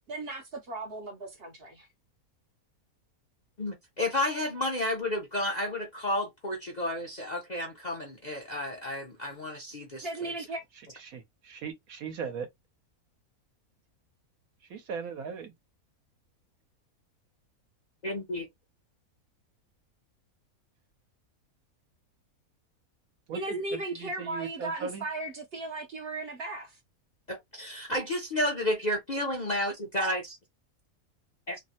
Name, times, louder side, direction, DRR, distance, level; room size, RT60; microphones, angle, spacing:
voice 1, 0.1-1.9 10.0-10.6 23.3-26.8, right 2 dB, 55° right, 0.8 m, -36 dB
voice 2, 3.6-10.1 18.0-18.5 27.3-30.4 31.5-31.6, left 1 dB, 45° left, 0.6 m, -31 dB
voice 3, 11.1-12.5 14.7-15.5 23.3-25.0, right 6 dB, 75° right, 1.2 m, -38 dB
3.1 x 2.1 x 2.7 m
omnidirectional pair, 1.5 m